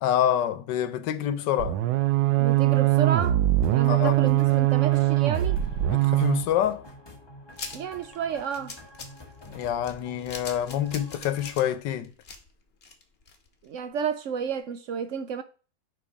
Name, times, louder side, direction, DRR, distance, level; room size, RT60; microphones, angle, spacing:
voice 1, 0.0-1.8 3.8-4.3 5.9-6.8 9.4-12.1, left 10 dB, 85° left, 1.3 m, -27 dB
sound 1, 1.6-6.5, right 16 dB, 85° right, 1.2 m, -22 dB
voice 2, 2.4-3.4 3.7-5.6 7.7-8.8 13.6-15.4, right 7 dB, 70° right, 0.7 m, -31 dB
sound 2, 3.2-11.5, left 1 dB, 20° left, 1.0 m, -48 dB
sound 3, 7.5-13.6 14.0-14.1 14.4-14.5, left 4 dB, 40° left, 1.2 m, -42 dB
7.0 x 3.7 x 5.1 m
omnidirectional pair, 1.8 m